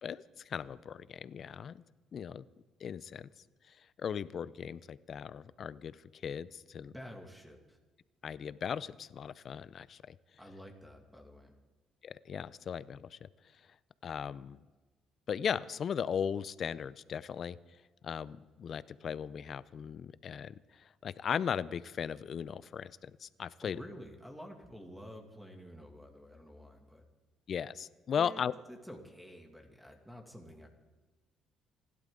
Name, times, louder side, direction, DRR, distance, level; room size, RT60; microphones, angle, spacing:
voice 1, 0.0-1.8 2.1-2.4 2.8-3.3 3.7-6.0 6.2-6.9 8.2-10.2 12.0-13.3 14.0-14.6 15.3-17.6 18.0-23.8 27.5-28.5, left 7 dB, 50° left, 18 dB, 0.5 m, -37 dB
voice 2, 6.8-7.8 10.4-11.6 23.6-27.0 28.2-28.4 28.7-30.7, equal, 5° right, 2 dB, 2.3 m, -49 dB
27.0 x 12.0 x 3.8 m, 1.3 s
cardioid pair, 90°, 0 cm